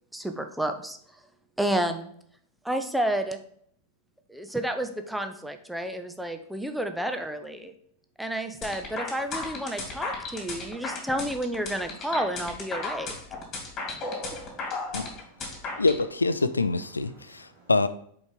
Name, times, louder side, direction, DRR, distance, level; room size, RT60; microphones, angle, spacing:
voice 1, 0.1-1.0 1.6-2.1 2.6-3.4 4.3-7.7 8.2-13.1 13.9-14.0, right 1 dB, ahead, 7 dB, 0.6 m, -30 dB
sound 1, 8.6-16.0, left 3 dB, 30° left, 2.5 m, -34 dB
voice 2, 13.9-15.2 15.5-15.8 17.1-17.7, right 2 dB, 40° right, -6 dB, 1.9 m, -56 dB
voice 3, 15.8-17.9, left 3 dB, 80° left, 13 dB, 0.4 m, -25 dB
5.3 x 4.7 x 5.1 m, 0.64 s
figure-of-eight pair, 90°, 0 cm